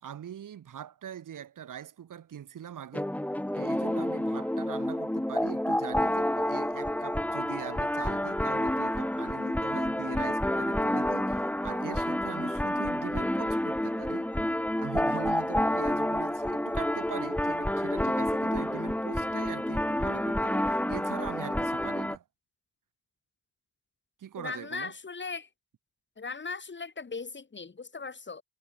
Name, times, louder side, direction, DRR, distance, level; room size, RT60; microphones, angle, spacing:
voice 1, 0.0-3.1 3.5-14.3 14.8-22.2 24.2-24.9, right 9 dB, 85° right, 3.3 m, -42 dB
sound 1, 2.9-22.2, left 1 dB, 5° left, 2.5 m, -29 dB
voice 2, 24.4-25.5 26.2-28.4, left 4 dB, 35° left, 6.6 m, -38 dB
wide cardioid pair, 125°, 31 cm